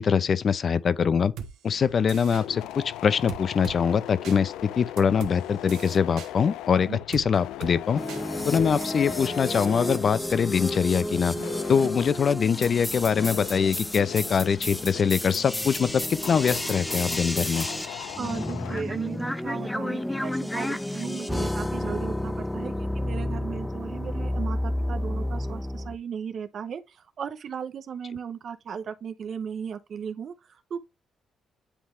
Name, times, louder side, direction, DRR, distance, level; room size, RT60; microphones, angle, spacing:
voice 1, 0.0-1.3 1.6-8.0 8.4-11.4 11.7-17.7, left 6 dB, 50° left, 0.6 m, -23 dB
sound 1, 1.4-1.5 2.1-2.4 3.3-3.8 4.2-4.4 5.0-5.4 5.7-6.3 7.1-7.3 7.6-7.7 8.1-8.2 8.6-8.8, right 8 dB, 85° right, 1.4 m, -38 dB
sound 2, 1.8-18.8, left 13 dB, 90° left, 0.3 m, -40 dB
sound 3, 8.0-26.0, left 1 dB, 10° left, 0.7 m, -31 dB
voice 2, 18.2-30.8, right 7 dB, 55° right, 0.8 m, -36 dB
10.0 x 3.6 x 3.2 m
cardioid pair, 90°, 0 cm